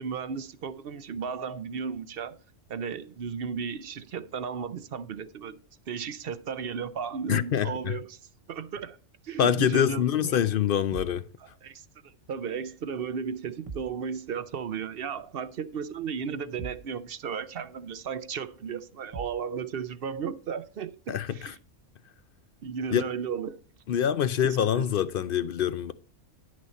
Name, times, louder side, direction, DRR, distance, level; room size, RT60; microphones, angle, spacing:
voice 1, 0.0-2.4 2.7-5.6 5.9-8.2 8.5-9.0 9.2-10.4 11.4-21.6 22.6-23.6 24.7-24.9, right 6 dB, 55° right, 0.7 m, -35 dB
voice 2, 7.3-8.0 9.4-11.3 21.1-21.5 22.9-23.0 23.9-25.9, left 9 dB, 60° left, 0.6 m, -25 dB
sound 1, 10.9-11.3 13.7-14.0 16.6-17.0 19.1-19.5, right 5 dB, 30° right, 0.9 m, -41 dB
10.5 x 6.3 x 4.2 m
omnidirectional pair, 1.3 m